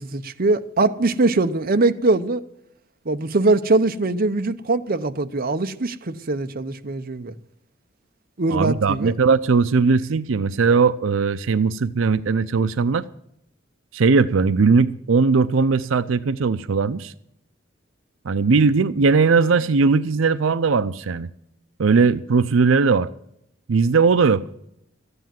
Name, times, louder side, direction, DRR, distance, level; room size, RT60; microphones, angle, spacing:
voice 1, 0.0-2.4 3.1-7.3 8.4-9.1, right 2 dB, 50° right, 0.8 m, -22 dB
voice 2, 8.5-13.0 13.9-17.1 18.2-21.3 21.8-23.1 23.7-24.4, right 4 dB, 90° right, 0.5 m, -19 dB
14.0 x 9.7 x 7.6 m
head